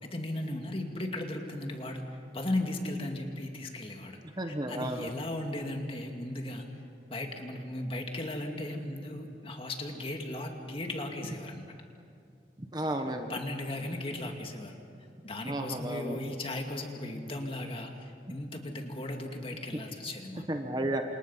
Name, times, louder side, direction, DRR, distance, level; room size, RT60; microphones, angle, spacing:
voice 1, 0.0-2.1 2.3-4.2 4.5-6.7 7.1-11.7 13.3-14.8 15.2-20.4, left 1 dB, 30° left, 3 dB, 2.3 m, -36 dB
voice 2, 4.2-5.1 12.7-13.4 15.4-16.2 18.3-18.4 20.5-21.0, right 1 dB, 25° right, 5 dB, 1.2 m, -33 dB
28.5 x 27.0 x 5.7 m, 2.5 s
head